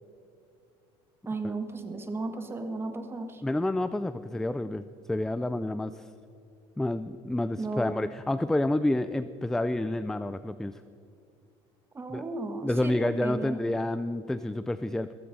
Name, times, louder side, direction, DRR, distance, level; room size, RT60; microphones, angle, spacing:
voice 1, 1.3-3.4 7.6-7.9 11.9-13.6, right 3 dB, 20° right, 6 dB, 1.7 m, -35 dB
voice 2, 3.4-6.1 6.8-10.8 12.1-12.2 12.6-15.1, left 1 dB, 5° left, 13 dB, 0.4 m, -29 dB
15.5 x 15.0 x 5.4 m, 2.4 s
supercardioid pair, 115°, 12 cm